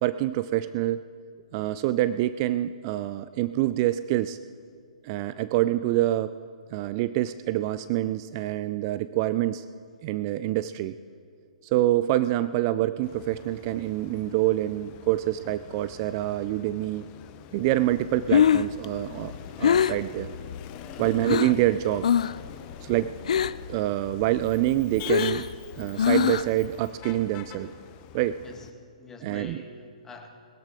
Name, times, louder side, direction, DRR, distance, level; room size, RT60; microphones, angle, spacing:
voice 1, 0.0-1.0 1.5-4.4 5.0-6.4 6.7-9.6 10.0-10.9 11.6-17.0 17.5-19.3 19.6-20.3 21.0-22.1 22.8-23.1 23.7-25.5 25.8-27.7 28.1-28.4 29.2-29.6, right 15 dB, 35° right, 14 dB, 0.4 m, -26 dB
Motor vehicle (road), 13.0-28.7, left 10 dB, 30° left, 0.8 m, -45 dB
Breathing, 18.0-21.6 22.0-22.5 22.7-23.7 24.1-26.7, left 8 dB, 65° left, 0.4 m, -24 dB
voice 2, 20.8-21.3 28.4-28.7 29.0-30.3, left 4 dB, 10° left, 3 dB, 1.6 m, -45 dB
20.5 x 13.5 x 3.7 m, 2.2 s
hypercardioid pair, 130°, 4 cm